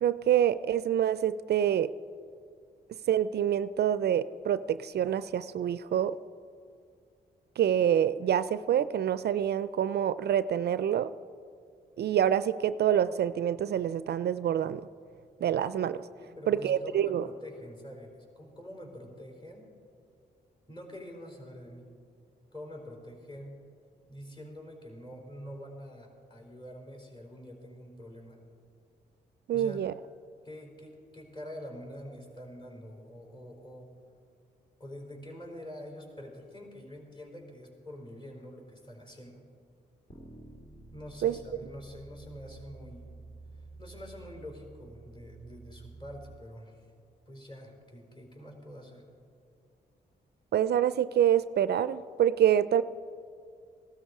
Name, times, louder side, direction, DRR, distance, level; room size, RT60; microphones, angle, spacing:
voice 1, 0.0-1.9 3.1-6.2 7.6-11.1 12.0-14.9 15.4-16.0 16.5-17.3 29.5-29.9 41.2-41.3 50.5-52.8, right 10 dB, 65° right, 15 dB, 0.4 m, -26 dB
voice 2, 16.2-19.7 20.7-21.9 22.5-23.6 24.1-28.4 29.5-29.8 30.4-33.9 34.8-39.4 40.9-43.1 43.5-46.9 47.3-49.1, equal, 25° left, 1 dB, 4.5 m, -46 dB
sound 1, 40.1-46.4, right 2 dB, 45° left, 2.4 m, -50 dB
16.0 x 13.0 x 4.9 m, 2.3 s
supercardioid pair, 50°, 18 cm